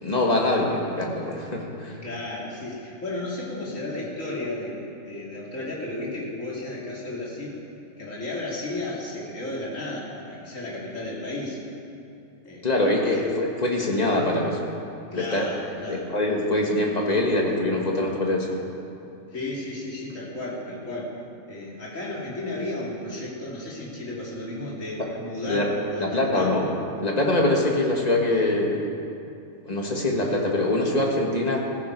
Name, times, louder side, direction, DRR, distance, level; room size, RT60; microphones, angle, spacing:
voice 1, 0.0-2.0 12.6-14.8 15.1-15.5 15.9-18.5 25.0-25.1 25.4-25.7 26.0-26.7 27.0-28.9 29.7-31.6, left 1 dB, 30° left, -1 dB, 1.9 m, -24 dB
voice 2, 2.0-7.6 8.0-11.6 12.4-12.7 15.1-16.1 19.3-21.2 21.5-26.6, left 2 dB, 60° left, -5 dB, 3.3 m, -33 dB
15.5 x 15.0 x 4.7 m, 2.6 s
omnidirectional pair, 1.5 m